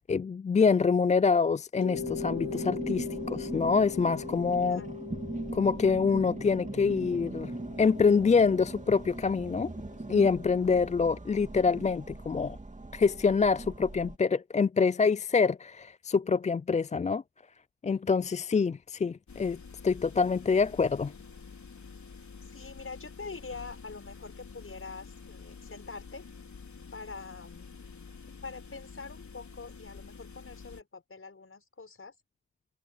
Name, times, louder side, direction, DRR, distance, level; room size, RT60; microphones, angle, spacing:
voice 1, 0.1-4.8 5.5-7.5 7.8-9.7 10.1-12.6 12.9-17.2 17.8-19.6 19.8-21.1, left 5 dB, 20° left, 0.3 m, -26 dB
Mallet percussion, 1.8-10.4, left 8 dB, 85° left, 3.7 m, -42 dB
sound 1, 1.9-14.2, right 2 dB, 20° right, 2.7 m, -40 dB
voice 2, 4.6-5.0 22.5-26.3 26.9-27.7 28.4-32.1, left 4 dB, 40° left, 6.8 m, -44 dB
sound 2, 19.3-30.8, left 5 dB, 55° left, 5.0 m, -48 dB
cardioid pair, 60°, 34 cm